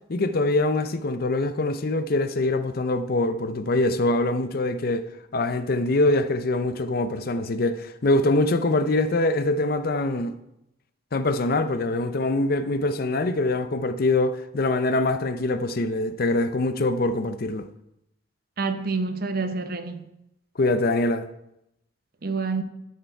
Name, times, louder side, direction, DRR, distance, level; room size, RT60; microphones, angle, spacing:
voice 1, 0.1-5.0 5.3-10.3 11.1-17.7 20.6-21.3, left 2 dB, 55° left, 0.6 m, -24 dB
voice 2, 18.6-20.0 22.2-22.6, right 4 dB, 55° right, 0.8 m, -27 dB
11.0 x 6.6 x 4.6 m
head